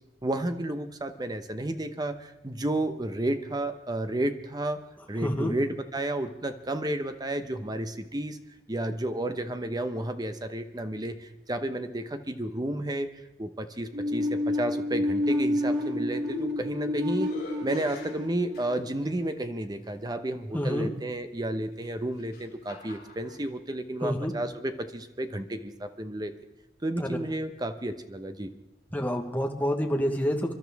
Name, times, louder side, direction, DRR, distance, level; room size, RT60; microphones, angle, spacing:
voice 1, 0.2-4.8 5.1-8.4 8.7-13.1 13.4-17.3 17.6-26.3 26.8-28.5, right 1 dB, 20° right, 8 dB, 0.9 m, -32 dB
voice 2, 5.2-5.5 20.5-20.9 24.0-24.3 27.0-27.2 28.9-30.5, equal, 10° left, 2 dB, 1.2 m, -28 dB
sound 1, 13.9-19.6, left 1 dB, 90° right, 2.1 m, -29 dB
sound 2, 16.4-16.8 17.2-19.1 19.8-19.9 21.7-23.4, left 3 dB, 55° left, 4.6 m, -47 dB
28.0 x 12.0 x 3.5 m, 0.93 s
head